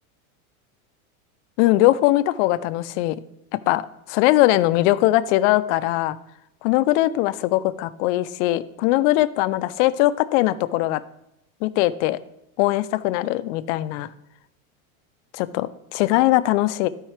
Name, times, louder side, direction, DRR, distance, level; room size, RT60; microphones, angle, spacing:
voice 1, 1.6-3.2 3.5-6.2 6.6-11.0 11.6-12.2 12.6-14.1 15.3-16.9, left 16 dB, 55° left, 15 dB, 0.5 m, -20 dB
12.0 x 4.7 x 3.3 m, 0.85 s
supercardioid pair, 120°, 43 cm